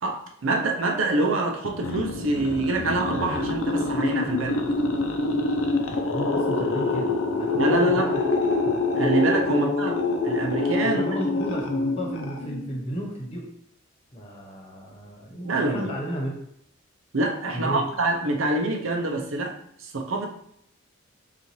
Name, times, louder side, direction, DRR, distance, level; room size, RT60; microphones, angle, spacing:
voice 1, 0.0-4.6 7.5-8.1 9.0-10.0 10.2-11.0 15.4-15.9 17.1-20.3, right 2 dB, 70° right, 2 dB, 0.6 m, -25 dB
sound 1, 1.6-12.8, left 3 dB, 90° left, 0.7 m, -26 dB
voice 2, 5.9-8.1 8.6-8.7 9.5-9.6 10.8-13.5 14.1-16.4 17.5-17.8, equal, 30° left, -1 dB, 1.0 m, -33 dB
5.6 x 2.5 x 3.1 m, 0.72 s
head